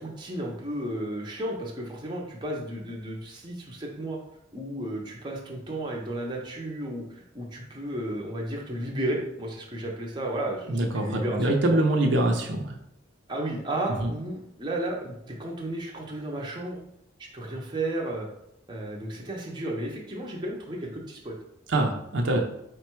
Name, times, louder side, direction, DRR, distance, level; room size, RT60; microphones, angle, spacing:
voice 1, 0.0-4.2 4.5-11.8 13.3-16.8 17.3-18.3 18.7-21.3, right 1 dB, 25° right, -1 dB, 0.7 m, -33 dB
voice 2, 10.7-12.7 14.0-14.1 21.7-22.4, right 1 dB, 70° right, 2 dB, 0.7 m, -24 dB
4.9 x 2.2 x 4.5 m, 0.80 s
head